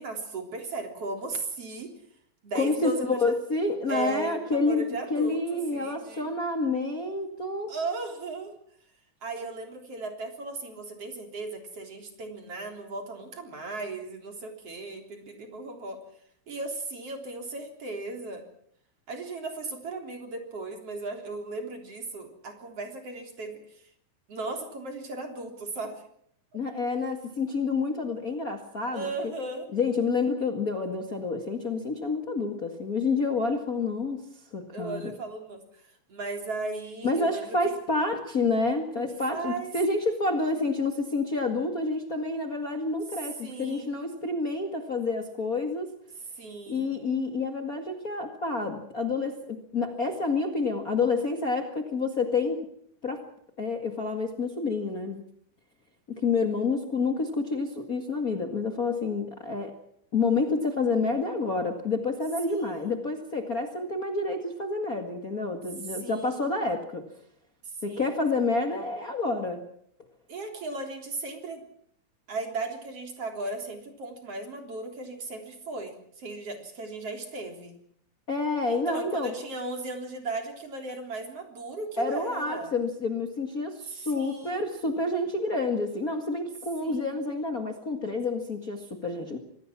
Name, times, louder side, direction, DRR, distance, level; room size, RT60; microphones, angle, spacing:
voice 1, 0.0-1.9 2.4-3.4 3.9-6.3 7.7-8.6 9.2-16.0 16.5-18.4 19.1-23.8 24.3-26.0 28.9-29.7 34.7-37.6 38.9-39.7 43.4-43.9 46.4-47.0 62.5-63.0 65.9-66.5 67.6-68.2 70.3-71.6 72.3-77.8 78.7-82.7 83.8-84.6 86.8-87.2, right 2 dB, 35° right, 4 dB, 4.1 m, -36 dB
voice 2, 2.5-7.7 26.5-29.1 29.7-34.2 34.5-35.1 37.0-45.9 46.7-52.6 53.0-53.2 53.6-55.2 56.2-59.7 60.1-67.1 67.8-69.6 78.3-79.3 82.0-89.4, left 3 dB, 90° left, 4 dB, 0.7 m, -28 dB
26.0 x 20.0 x 6.1 m, 0.67 s
omnidirectional pair, 5.2 m